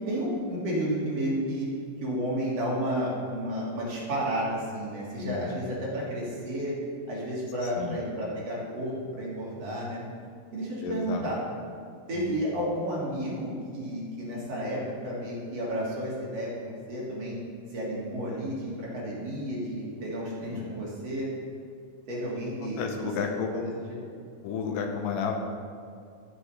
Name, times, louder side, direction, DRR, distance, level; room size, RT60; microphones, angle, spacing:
voice 1, 0.1-1.7 2.0-6.8 7.1-10.0 10.5-11.4 12.1-17.4 17.7-21.3 22.1-22.8 23.5-23.6 23.9-24.0, equal, 50° right, -6 dB, 2.6 m, -32 dB
voice 2, 5.2-5.6 7.6-8.0 10.8-11.2 12.1-12.4 20.0-20.1 20.5-20.8 22.6-23.5 24.4-25.4, left 6 dB, 80° left, 3 dB, 2.3 m, -33 dB
14.5 x 5.1 x 4.2 m, 2.3 s
omnidirectional pair, 4.0 m